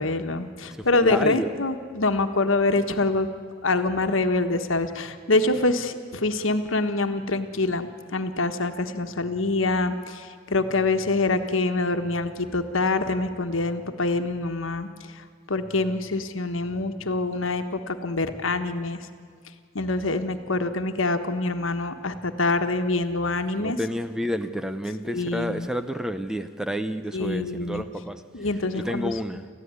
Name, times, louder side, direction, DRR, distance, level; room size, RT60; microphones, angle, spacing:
voice 1, 0.0-3.3 3.6-14.9 15.1-19.0 19.7-23.8 25.1-25.7 27.1-27.8 28.3-29.1, left 2 dB, 85° left, 7 dB, 1.4 m, -25 dB
voice 2, 0.7-1.5 23.6-28.2 28.7-29.5, equal, 5° right, 10 dB, 0.7 m, -30 dB
28.5 x 14.5 x 9.6 m, 2.1 s
head